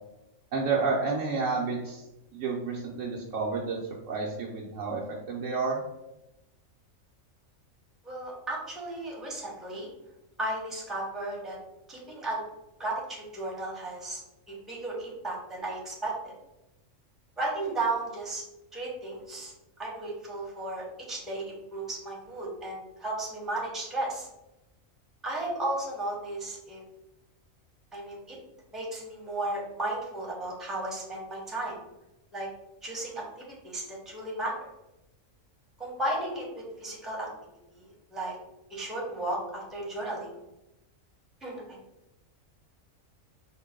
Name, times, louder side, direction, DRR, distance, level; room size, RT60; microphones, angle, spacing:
voice 1, 0.5-2.0 2.3-3.8 4.1-5.0 5.3-5.8, right 4 dB, 70° right, -3 dB, 0.9 m, -30 dB
voice 2, 8.0-9.9 10.4-11.6 11.9-12.4 12.8-14.2 14.7-16.3 17.4-18.4 18.7-19.5 19.8-24.3 25.2-26.8 27.9-28.3 28.7-31.8 32.3-32.5 32.8-34.5 35.8-37.3 37.7-37.8 38.1-38.3 38.7-40.4 41.4-41.8, right 2 dB, ahead, -4 dB, 0.8 m, -34 dB
4.5 x 2.1 x 3.5 m, 0.93 s
omnidirectional pair, 1.4 m